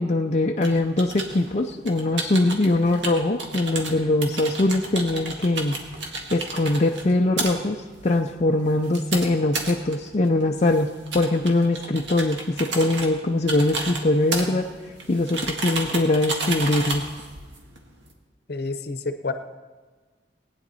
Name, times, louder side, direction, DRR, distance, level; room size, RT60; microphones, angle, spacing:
voice 1, 0.0-5.8 6.3-10.9 11.1-14.7 15.1-17.0, left 2 dB, 40° left, 2 dB, 0.5 m, -22 dB
sound 1, 0.6-18.1, right 3 dB, 90° right, 1.7 m, -33 dB
voice 2, 18.5-19.3, left 3 dB, 60° left, 9 dB, 0.8 m, -29 dB
18.5 x 9.7 x 4.1 m, 1.4 s
head